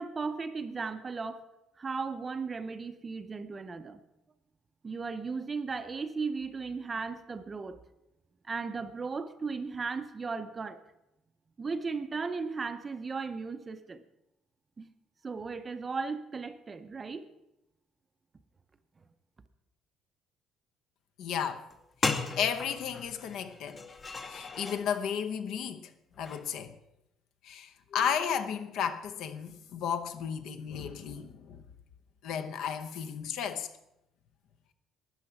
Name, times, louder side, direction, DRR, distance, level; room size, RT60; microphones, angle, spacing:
voice 1, 0.0-1.5 1.8-4.0 4.8-7.8 8.4-10.8 11.6-14.0 14.8-14.9 15.2-17.3, right 4 dB, 20° right, 0.6 m, -36 dB
voice 2, 21.2-21.6 22.0-23.8 24.3-25.9 26.2-26.8 27.4-31.6 32.2-33.7, left 8 dB, 60° left, 0.9 m, -34 dB
sound 1, 21.7-21.8 22.0-24.9 26.2-26.5, left 4 dB, 25° left, 0.8 m, -36 dB
13.0 x 9.8 x 5.9 m
cardioid pair, 165°, 0 cm